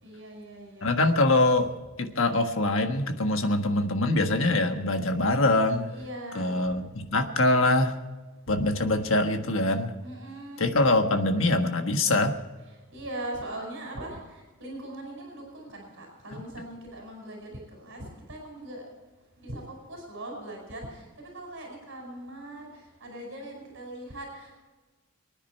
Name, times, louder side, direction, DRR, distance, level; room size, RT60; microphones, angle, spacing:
voice 1, 0.0-1.0 5.9-6.7 8.5-8.9 10.0-10.7 12.9-14.2 14.6-18.8 19.4-22.7 23.0-24.6, right 1 dB, 60° right, 1 dB, 5.2 m, -40 dB
voice 2, 0.8-1.7 2.0-5.9 6.3-8.0 8.5-9.9 10.6-12.4, left 2 dB, 60° left, 6 dB, 1.5 m, -24 dB
24.0 x 9.9 x 4.5 m, 1.2 s
head